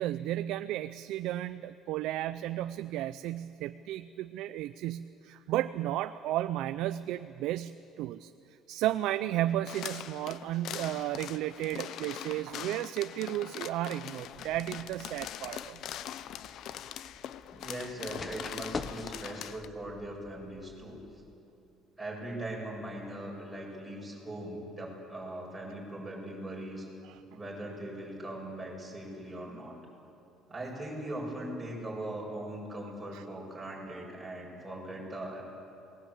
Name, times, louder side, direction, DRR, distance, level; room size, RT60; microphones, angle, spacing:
voice 1, 0.0-15.8 27.0-27.2 33.1-33.2, right 13 dB, 70° right, 11 dB, 0.6 m, -33 dB
sound 1, 9.7-19.7, left 11 dB, 55° left, 0.7 m, -42 dB
sound 2, 14.2-21.3, left 4 dB, 25° left, 1.0 m, -46 dB
voice 2, 17.5-21.0 22.0-26.9 27.3-29.8 30.5-35.4, right 1 dB, 10° right, -3 dB, 7.1 m, -40 dB
28.5 x 19.5 x 8.5 m, 2.7 s
cardioid pair, 145°, 0 cm